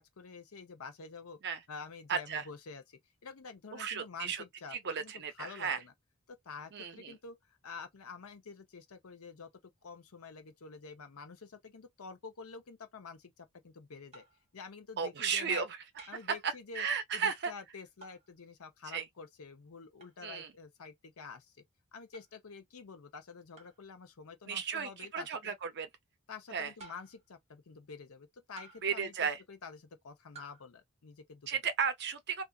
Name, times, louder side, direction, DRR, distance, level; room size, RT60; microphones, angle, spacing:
voice 1, 0.0-1.4 1.7-5.9 6.3-9.5 9.8-14.2 14.5-15.6 16.1-16.9 17.1-21.6 21.9-25.6 26.3-31.5, left 5 dB, 70° left, 0.6 m, -48 dB
voice 2, 2.1-2.4 3.7-4.4 4.7-5.8 6.7-7.1 15.0-15.7 16.4-17.5 18.9-19.0 20.2-20.5 24.5-25.9 26.5-26.7 28.8-29.4 31.5-32.4, right 6 dB, 50° right, 0.6 m, -34 dB
sound 1, 14.1-14.4 16.0-16.4 18.0-18.3 20.0-20.2 22.1-22.3 23.6-23.8 25.2-25.4 26.8-27.3 28.6-29.0 30.3-30.6, right 4 dB, 30° right, 1.0 m, -54 dB
2.4 x 2.4 x 2.3 m
head